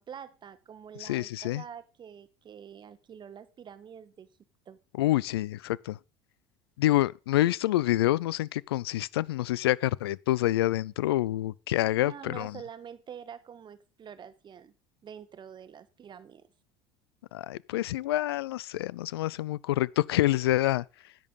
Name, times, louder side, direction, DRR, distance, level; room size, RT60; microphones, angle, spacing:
voice 1, 0.0-4.3 4.6-4.8 12.0-14.7 15.0-16.5, right 8 dB, 35° right, 1.3 m, -46 dB
voice 2, 1.0-1.6 5.0-6.0 6.8-12.6 17.3-20.8, left 15 dB, 90° left, 0.5 m, -27 dB
11.0 x 9.0 x 5.3 m
hypercardioid pair, 85°, 13 cm